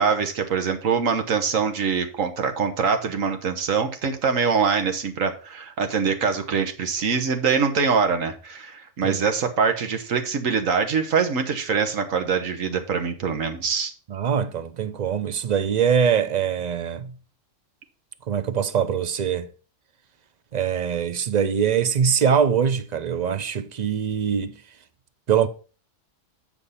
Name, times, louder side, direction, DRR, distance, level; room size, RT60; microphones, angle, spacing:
voice 1, 0.0-13.9, right 5 dB, 85° right, 1.5 m, -24 dB
voice 2, 14.1-17.1 18.3-19.5 20.5-24.6 25.3-25.5, right 7 dB, 50° right, 0.5 m, -23 dB
8.3 x 5.3 x 5.5 m
omnidirectional pair, 1.3 m